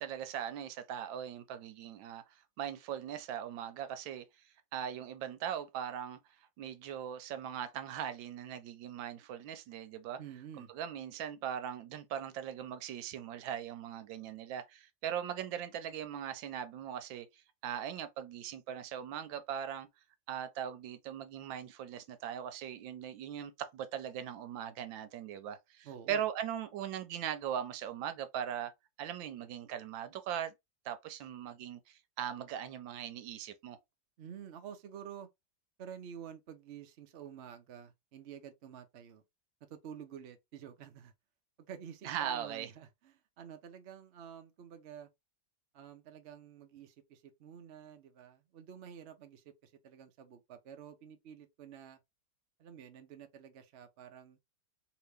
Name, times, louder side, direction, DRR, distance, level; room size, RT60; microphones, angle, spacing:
voice 1, 0.0-2.2 2.6-4.3 4.7-6.2 6.6-10.2 10.6-19.9 20.3-28.7 29.0-30.5 30.8-33.8 42.0-42.7, right 9 dB, 85° right, 1.4 m, -40 dB
voice 2, 10.2-10.7 25.8-26.2 34.2-35.3 35.8-39.2 39.7-41.1 41.7-45.1 45.7-52.0 52.6-54.4, right 8 dB, 70° right, 0.6 m, -50 dB
2.9 x 2.9 x 3.3 m
omnidirectional pair, 2.0 m